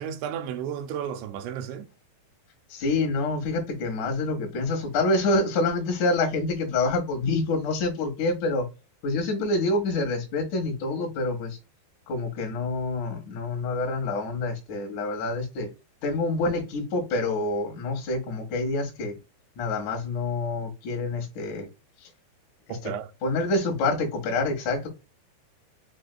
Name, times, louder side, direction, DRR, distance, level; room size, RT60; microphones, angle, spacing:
voice 1, 0.0-1.9 22.7-23.1, right 9 dB, 85° right, 2.9 m, -33 dB
voice 2, 2.7-8.7 9.0-11.6 12.1-15.7 16.0-19.2 19.6-21.7 23.2-24.9, left 2 dB, 60° left, 2.2 m, -27 dB
7.7 x 2.7 x 2.2 m
omnidirectional pair, 5.1 m